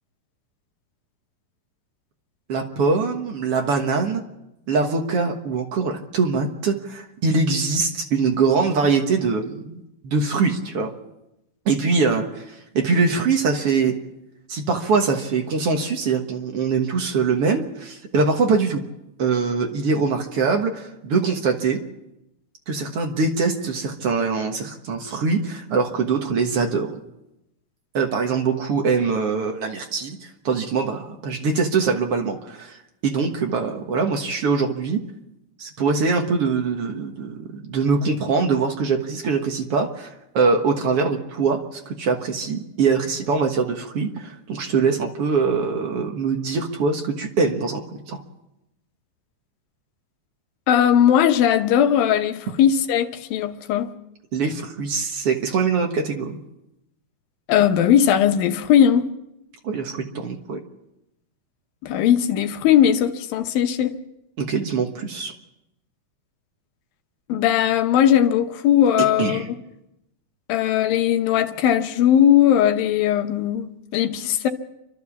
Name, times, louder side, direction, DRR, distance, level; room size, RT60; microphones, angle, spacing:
voice 1, 2.5-4.2 4.7-10.9 11.7-13.9 14.5-18.8 19.2-21.8 22.7-27.0 27.9-35.0 35.6-48.2 54.3-56.4 59.6-60.6 64.4-65.3 69.2-69.5, right 4 dB, 55° right, 1.8 m, -23 dB
voice 2, 50.7-53.9 57.5-59.1 61.8-63.9 67.3-69.4 70.5-74.5, left 10 dB, 80° left, 2.8 m, -18 dB
30.0 x 12.0 x 7.2 m
omnidirectional pair, 4.1 m